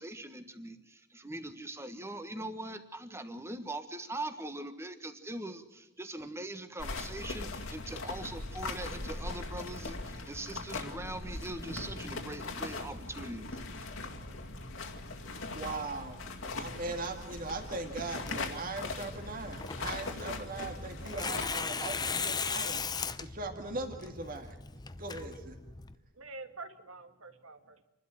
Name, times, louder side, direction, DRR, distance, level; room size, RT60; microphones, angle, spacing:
voice 1, 0.0-13.9, right 1 dB, 10° right, 8 dB, 1.4 m, -42 dB
sound 1, 6.8-21.5, left 3 dB, 65° left, 2.2 m, -40 dB
voice 2, 15.5-24.6 25.0-25.6, right 3 dB, 40° right, 3 dB, 2.1 m, -40 dB
Tearing, 18.2-25.9, left 5 dB, 20° left, 0.7 m, -38 dB
voice 3, 26.1-27.8, right 3 dB, 75° right, 8 dB, 1.9 m, -47 dB
28.5 x 12.0 x 7.7 m, 0.99 s
head